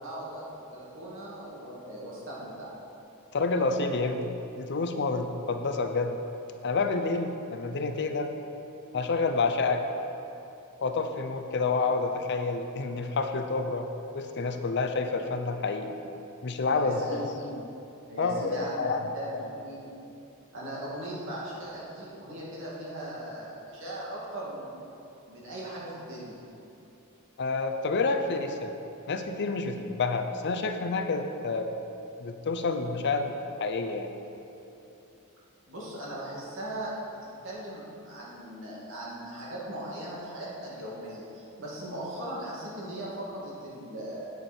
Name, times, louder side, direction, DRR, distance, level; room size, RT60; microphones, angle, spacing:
voice 1, 0.0-2.7 16.7-17.2 18.1-18.7 19.1-19.9 20.5-24.9 25.3-26.4 35.7-36.9 37.2-44.3, right 1 dB, 60° right, -6 dB, 2.4 m, -39 dB
voice 2, 3.3-6.2 6.6-8.3 8.9-9.8 10.8-13.9 14.1-15.9 16.4-17.6 18.2-19.1 27.4-28.7 29.1-31.7 32.2-33.3 33.6-34.1, left 3 dB, 55° left, 6 dB, 0.6 m, -29 dB
9.1 x 8.2 x 4.4 m, 2.9 s
head